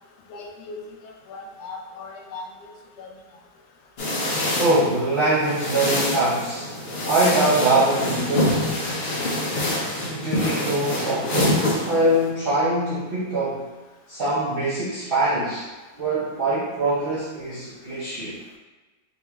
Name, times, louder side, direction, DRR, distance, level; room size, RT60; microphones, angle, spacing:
voice 1, 0.3-0.8 1.3-2.7 3.0-3.1, left 3 dB, 85° left, -1 dB, 1.2 m, -38 dB
sound 1, 4.0-12.3, left 1 dB, 55° left, 0.7 m, -26 dB
voice 2, 4.6-6.7 7.1-8.9 10.0-13.7 14.1-15.7 16.0-18.4, right 2 dB, 50° right, -10 dB, 0.7 m, -23 dB
3.8 x 3.0 x 2.2 m, 1.2 s
omnidirectional pair, 1.7 m